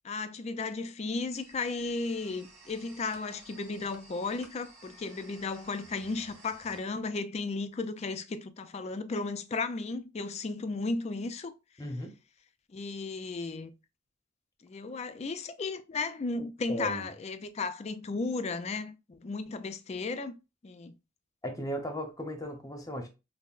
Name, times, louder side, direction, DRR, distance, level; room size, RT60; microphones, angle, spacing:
voice 1, 0.0-11.5 12.7-13.7 14.6-20.3 20.6-20.9, left 3 dB, 35° left, 0.3 m, -35 dB
sound 1, 1.3-6.8, right 2 dB, 35° right, 1.5 m, -54 dB
voice 2, 11.8-12.1 16.7-17.1 21.4-23.1, equal, 20° left, 0.7 m, -36 dB
5.5 x 2.0 x 2.4 m
head